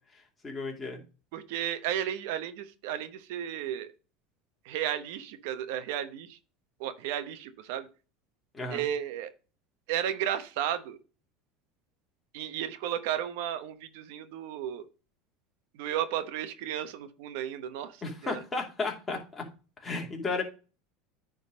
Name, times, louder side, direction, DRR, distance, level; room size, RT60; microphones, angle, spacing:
voice 1, 0.4-1.0 8.5-8.8 18.0-19.4 19.8-20.4, left 3 dB, 15° left, 0 dB, 2.6 m, -33 dB
voice 2, 1.3-3.9 4.6-6.4 6.8-7.9 8.7-9.3 9.9-11.0 12.3-14.9 15.7-18.4, right 10 dB, 75° right, 11 dB, 0.9 m, -33 dB
9.6 x 3.9 x 5.0 m, 0.34 s
supercardioid pair, 135°, 0 cm